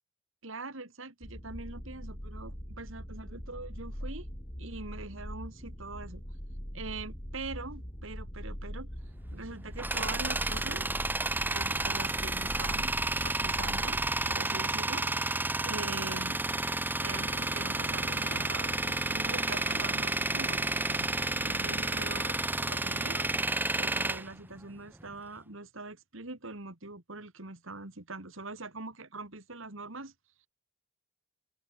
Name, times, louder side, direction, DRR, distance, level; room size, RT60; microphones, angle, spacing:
voice 1, 0.4-4.3 4.6-6.2 6.7-8.9 9.3-10.9 11.5-13.0 13.2-15.0 15.6-16.4 17.0-18.7 19.1-20.7 21.4-23.3 23.8-30.1, right 3 dB, 65° right, 2.7 m, -43 dB
sound 1, 1.2-14.4, equal, 25° left, 6.6 m, -42 dB
Tools, 9.3-25.1, right 2 dB, 10° right, 1.4 m, -31 dB
sound 2, 17.1-22.2, left 2 dB, 85° left, 5.5 m, -46 dB
head